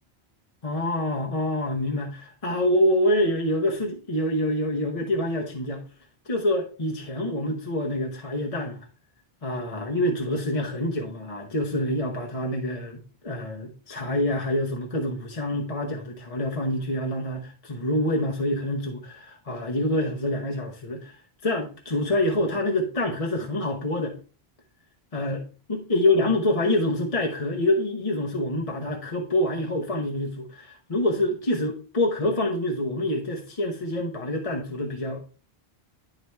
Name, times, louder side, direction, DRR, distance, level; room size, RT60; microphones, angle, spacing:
voice 1, 0.6-5.9 6.2-8.9 9.4-24.2 25.1-35.2, left 1 dB, 35° left, 1.1 m, -26 dB
11.0 x 4.0 x 3.3 m
omnidirectional pair, 1.1 m